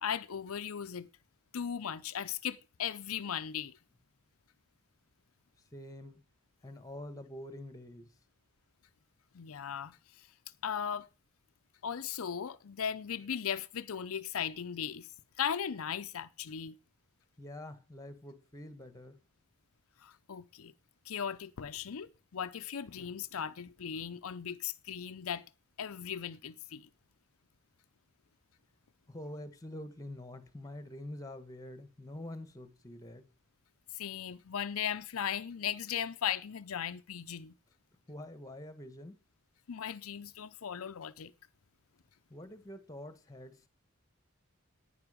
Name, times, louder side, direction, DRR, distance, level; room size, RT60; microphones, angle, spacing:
voice 1, 0.0-1.1 1.5-3.8 9.3-10.3 10.6-11.1 11.8-15.1 15.4-16.8 20.0-20.7 21.1-25.4 25.8-26.9 33.9-37.5 39.7-41.3, left 8 dB, 75° left, 0.6 m, -37 dB
voice 2, 5.7-6.2 6.6-8.1 17.4-19.2 29.1-33.3 38.1-39.2 42.3-43.7, left 1 dB, 15° left, 1.3 m, -46 dB
11.0 x 9.4 x 5.0 m
head